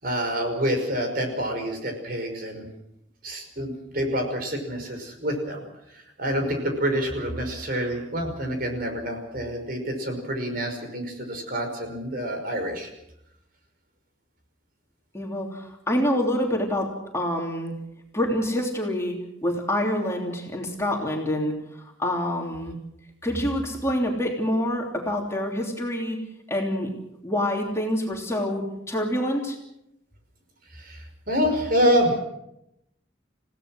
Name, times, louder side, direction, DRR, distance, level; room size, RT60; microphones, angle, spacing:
voice 1, 0.0-2.7 3.2-5.6 5.9-12.9 30.7-32.2, equal, 50° right, 4 dB, 5.5 m, -27 dB
voice 2, 15.1-17.7 18.1-22.8 23.2-26.2 26.5-26.9 27.2-29.6, left 1 dB, 15° left, 0 dB, 3.2 m, -27 dB
30.0 x 17.0 x 6.4 m, 0.82 s
head